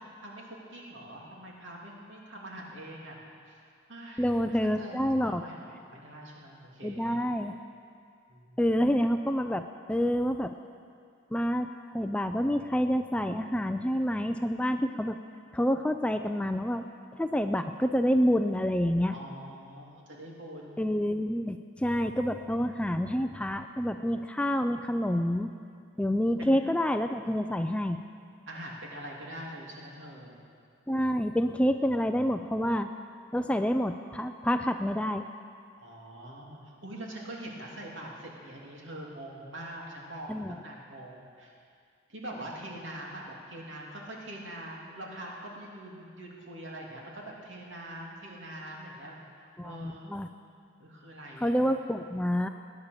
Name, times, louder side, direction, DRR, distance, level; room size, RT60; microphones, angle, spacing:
voice 1, 0.2-3.2 3.5-3.6 3.9-7.2 8.3-8.9 19.1-21.0 21.8-22.3 25.9-26.0 26.4-26.7 28.5-30.4 35.8-41.5 42.1-50.0 50.8-51.6, right 1 dB, 65° right, -2 dB, 2.9 m, -44 dB
voice 2, 4.2-5.4 6.8-7.5 8.6-9.6 9.9-10.5 11.3-11.7 11.9-15.2 15.5-16.9 17.2-19.2 20.8-25.5 26.0-28.0 30.9-32.9 33.3-35.3 40.3-40.6 49.6-50.3 51.4-52.5, equal, 5° left, 8 dB, 0.3 m, -28 dB
20.0 x 9.7 x 6.7 m, 2.3 s
head